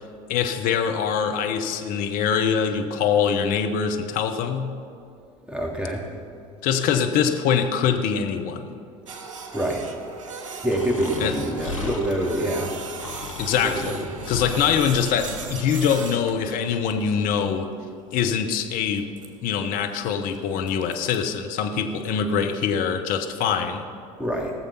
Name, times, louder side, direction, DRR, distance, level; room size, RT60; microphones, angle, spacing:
voice 1, 0.3-4.7 6.6-8.7 11.2-11.4 13.4-14.0 14.3-17.7 18.1-19.1 19.4-23.9, left 7 dB, 60° left, 6 dB, 1.0 m, -23 dB
voice 2, 5.5-6.1 9.5-9.8 10.6-12.7 13.6-14.0 24.2-24.5, right 1 dB, 5° right, -1 dB, 3.1 m, -26 dB
Printer, 9.1-21.2, right 5 dB, 85° right, 1.2 m, -39 dB
Breathing, 10.7-15.8, left 3 dB, 90° left, 0.9 m, -37 dB
19.0 x 7.2 x 5.7 m, 2.5 s
hypercardioid pair, 65°, 16 cm